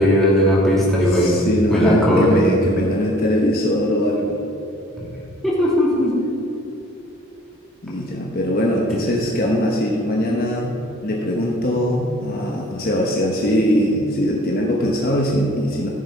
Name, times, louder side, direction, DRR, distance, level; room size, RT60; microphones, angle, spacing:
voice 1, 0.0-1.4 1.7-2.4 5.0-5.1 5.4-6.3 8.9-9.0, equal, ahead, -7 dB, 2.5 m, -17 dB
voice 2, 1.1-4.4 7.8-10.7 11.0-15.9, equal, 45° left, -1 dB, 1.1 m, -21 dB
15.0 x 6.8 x 4.7 m, 2.9 s
head